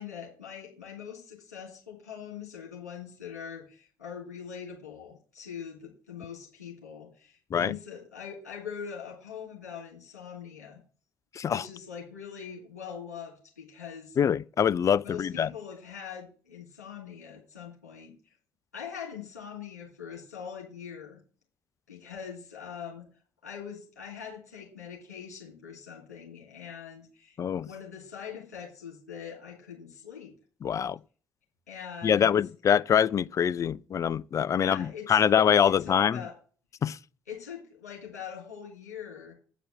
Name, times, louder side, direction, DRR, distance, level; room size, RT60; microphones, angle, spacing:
voice 1, 0.0-10.8 11.4-14.2 15.0-18.1 18.7-21.2 21.9-23.1 23.4-27.4 27.6-30.3 31.7-32.4 34.5-35.3 35.6-36.3 37.3-39.3, left 7 dB, 80° left, 3.1 m, -42 dB
voice 2, 14.2-15.5 27.4-27.7 30.6-31.0 32.0-36.2 36.8-37.0, left 8 dB, 40° left, 0.4 m, -24 dB
8.4 x 5.1 x 7.6 m
figure-of-eight pair, 45°, 9 cm